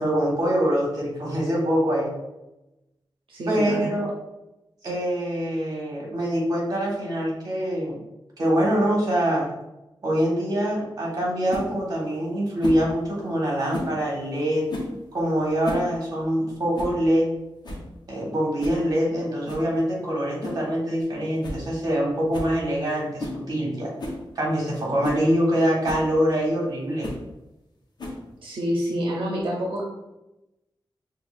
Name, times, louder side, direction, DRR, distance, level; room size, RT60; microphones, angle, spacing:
voice 1, 0.0-2.1 3.5-4.1 4.8-8.0 8.4-9.5 10.0-14.6 15.1-17.3 18.1-23.9 24.3-27.1, equal, 45° right, -3 dB, 1.4 m, -24 dB
voice 2, 3.3-3.9 28.4-29.8, equal, 85° right, -2 dB, 0.6 m, -27 dB
sound 1, 11.5-11.7 12.6-12.9 13.7-14.0 14.7-15.0 15.5-15.9 16.2-16.3 16.7-17.0 17.3-17.4 17.6-17.9 18.6-18.8 19.5-19.7 20.4-20.7 21.0-21.1 21.4-21.6 21.9-22.0 22.3-22.5 23.2-23.4 24.0-24.2 24.7-24.8 25.0-25.2 25.8-26.1 27.0-27.2 28.0-28.4, left 1 dB, 55° left, 0.8 m, -33 dB
5.7 x 2.4 x 2.5 m, 0.96 s
wide cardioid pair, 150°, 9 cm